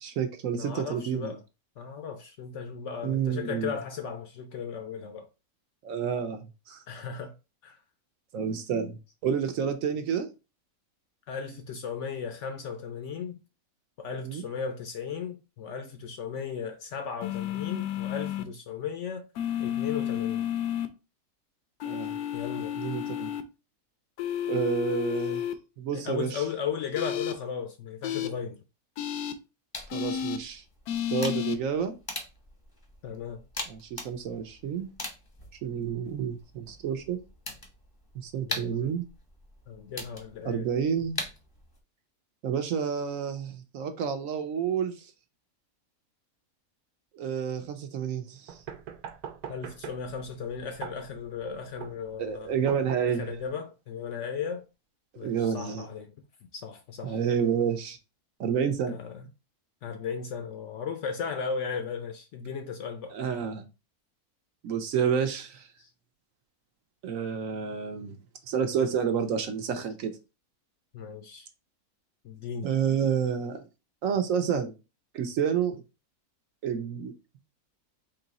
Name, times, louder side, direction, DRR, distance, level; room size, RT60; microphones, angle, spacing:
voice 1, 0.0-1.3 3.0-3.7 5.8-6.8 8.3-9.0 9.2-10.3 14.2-14.4 21.8-22.2 22.8-23.3 24.5-25.4 25.8-26.4 29.9-30.6 31.1-31.9 33.7-34.9 35.6-37.2 38.1-39.0 40.4-41.2 42.4-45.1 47.1-48.6 52.2-53.3 55.1-55.9 57.0-58.0 58.4-59.0 63.1-63.6 64.6-65.7 67.0-68.2 68.5-70.1 72.6-73.6 74.0-74.7 75.1-75.8 76.6-77.1, right 7 dB, 70° right, 1.0 m, -29 dB
voice 2, 0.6-1.4 1.8-5.3 6.9-7.3 7.6-7.8 11.3-13.4 14.0-19.2 19.6-20.5 22.3-22.8 25.9-28.6 33.0-33.4 38.5-39.0 39.7-40.7 43.1-43.2 49.5-52.7 53.1-54.6 55.2-56.1 56.4-57.2 58.9-59.3 59.8-63.2 65.8-65.9 70.9-71.5 72.2-72.7 75.7-75.8, left 6 dB, 65° left, 0.7 m, -36 dB
sound 1, 17.2-18.4 19.4-20.9 21.8-23.4 24.2-25.5 26.9-27.3 28.0-28.3 29.0-29.3 29.9-30.4 30.9-31.6, left 10 dB, 85° left, 1.1 m, -31 dB
sound 2, 29.7-41.8, left 1 dB, 20° left, 0.6 m, -42 dB
sound 3, 48.5-53.5, right 8 dB, 85° right, 1.1 m, -42 dB
3.8 x 2.8 x 3.9 m
omnidirectional pair, 1.6 m